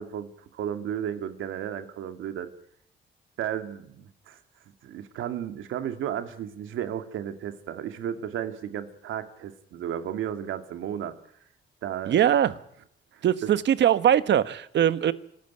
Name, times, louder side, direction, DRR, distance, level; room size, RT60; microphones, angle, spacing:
voice 1, 0.0-2.5 3.4-4.4 4.8-11.2 11.8-12.2 13.1-13.5, right 10 dB, 85° right, 8 dB, 2.2 m, -34 dB
voice 2, 12.1-12.5 13.2-15.1, right 10 dB, 65° right, 14 dB, 1.3 m, -21 dB
26.0 x 13.5 x 9.2 m, 0.70 s
cardioid pair, 90°, 20 cm